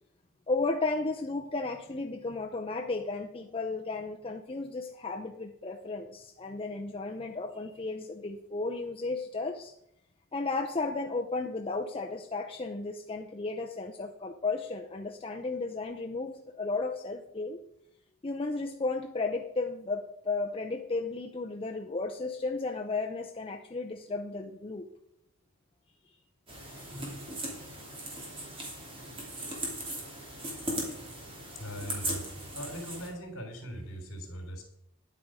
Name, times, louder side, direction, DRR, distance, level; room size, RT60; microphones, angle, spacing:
voice 1, 0.5-9.7 10.3-17.6 18.2-24.9, left 3 dB, 25° left, 2 dB, 0.6 m, -34 dB
sound 1, 26.5-33.1, right 1 dB, 25° right, 2.9 m, -38 dB
voice 2, 31.5-32.3 32.5-34.6, equal, 60° left, 2 dB, 3.6 m, -40 dB
10.5 x 8.4 x 5.0 m, 0.80 s
head